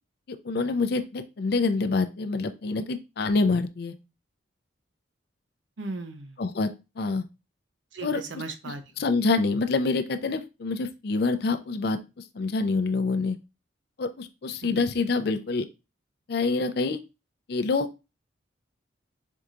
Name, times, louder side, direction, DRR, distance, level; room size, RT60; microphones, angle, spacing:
voice 1, 0.4-3.9 6.4-6.7 7.0-7.2 8.0-8.2 9.0-12.0 12.4-13.4 14.0-15.6 16.3-17.0 17.5-17.9, left 3 dB, 55° left, 9 dB, 0.4 m, -26 dB
voice 2, 5.8-6.4 7.9-9.1 14.6-14.9, right 3 dB, 70° right, 7 dB, 0.6 m, -37 dB
4.6 x 2.7 x 2.4 m, 0.27 s
head